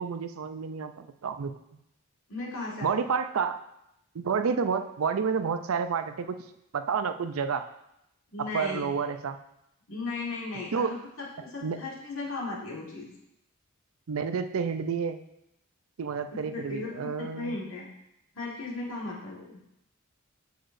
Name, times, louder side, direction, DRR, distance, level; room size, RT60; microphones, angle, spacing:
voice 1, 0.0-1.5 2.8-3.6 4.1-6.4 6.7-7.6 8.5-9.4 10.7-10.9 11.6-11.8 14.1-15.2 16.0-17.6, right 6 dB, 80° right, 9 dB, 0.5 m, -29 dB
voice 2, 2.3-3.1 8.3-8.9 9.9-13.1 16.3-17.9 18.3-19.6, left 3 dB, 70° left, -3 dB, 1.8 m, -36 dB
7.8 x 6.7 x 2.6 m, 0.83 s
head